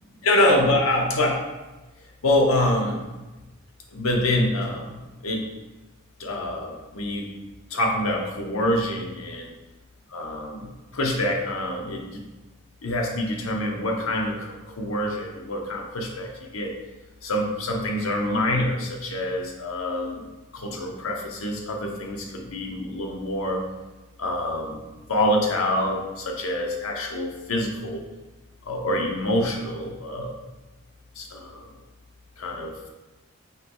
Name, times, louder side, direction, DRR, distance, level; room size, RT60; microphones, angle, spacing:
voice 1, 0.2-1.4 2.2-3.0 3.9-4.9 5.2-5.4 6.2-7.2 7.7-9.5 10.1-10.7 10.9-12.0 12.8-14.5 14.8-16.3 16.5-16.7 17.2-20.2 20.5-22.2 22.5-23.6 24.2-24.8 25.1-28.0 28.7-30.3 31.2-31.6 32.4-32.9, left 1 dB, 80° left, 1 dB, 0.8 m, -25 dB
5.6 x 3.0 x 3.0 m, 1.1 s
head